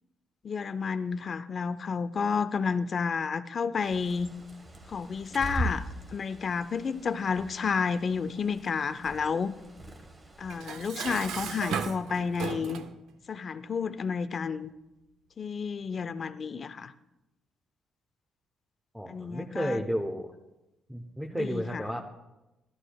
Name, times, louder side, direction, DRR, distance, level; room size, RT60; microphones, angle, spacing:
voice 1, 0.4-4.3 4.9-9.5 10.4-12.8 13.3-14.7 15.4-16.9 19.1-19.8 21.3-21.8, left 5 dB, 45° left, 13 dB, 0.5 m, -31 dB
Bird, 3.8-10.9, right 1 dB, 30° right, 1.2 m, -40 dB
Dishes pots and pans, 10.5-13.0, right 7 dB, 85° right, 0.5 m, -35 dB
voice 2, 18.9-20.3 20.9-22.0, equal, 5° right, 1 dB, 0.8 m, -32 dB
13.5 x 11.0 x 2.3 m, 0.96 s
cardioid pair, 90°, 0 cm